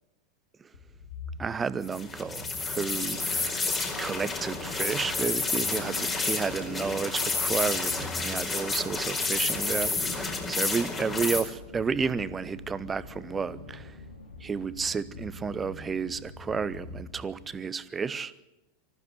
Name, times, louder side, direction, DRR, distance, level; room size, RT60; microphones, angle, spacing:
sound 1, 0.7-17.6, left 2 dB, 70° left, 3.5 m, -44 dB
voice 1, 1.4-13.9 14.4-18.3, right 5 dB, 15° right, 1.0 m, -32 dB
sound 2, 1.8-11.4, left 3 dB, 20° left, 4.5 m, -30 dB
25.5 x 14.5 x 7.9 m
figure-of-eight pair, 90°, 0 cm